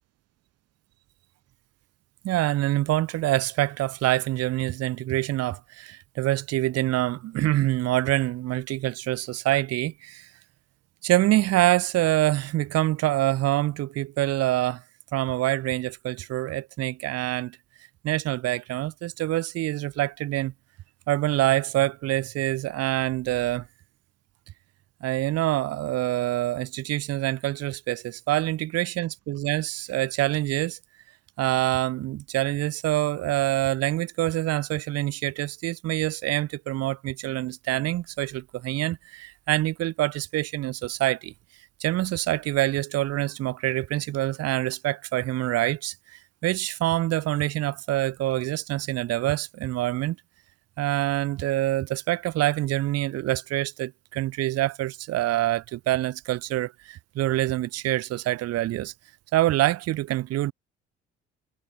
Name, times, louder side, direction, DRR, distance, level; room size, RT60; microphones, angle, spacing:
voice 1, 2.2-10.3 11.0-14.8 15.1-17.6 18.0-20.5 21.1-23.7 25.0-30.8 31.4-41.3 41.8-50.2 50.8-58.9 59.3-60.5, right 15 dB, 50° right, 1.3 m, -26 dB
figure-of-eight pair, 50°, 31 cm